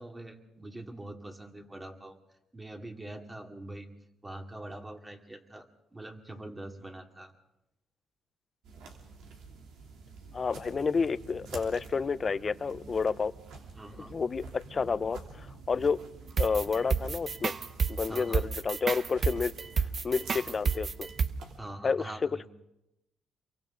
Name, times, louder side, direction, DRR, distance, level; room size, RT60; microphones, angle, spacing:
voice 1, 0.0-2.2 2.5-3.9 4.2-7.3 13.8-14.1 15.7-15.9 18.1-18.4 21.6-22.5, right 1 dB, 15° right, 3 dB, 2.5 m, -44 dB
sound 1, 8.6-21.6, right 4 dB, 85° right, 3.0 m, -48 dB
voice 2, 10.3-13.3 14.1-16.0 16.4-17.5 17.9-19.5 20.0-20.9 21.8-22.0, left 5 dB, 35° left, 15 dB, 0.7 m, -30 dB
sound 2, 16.4-21.3, right 5 dB, 45° right, 0.8 m, -30 dB
28.5 x 23.5 x 3.9 m, 0.89 s
cardioid pair, 90°, 0 cm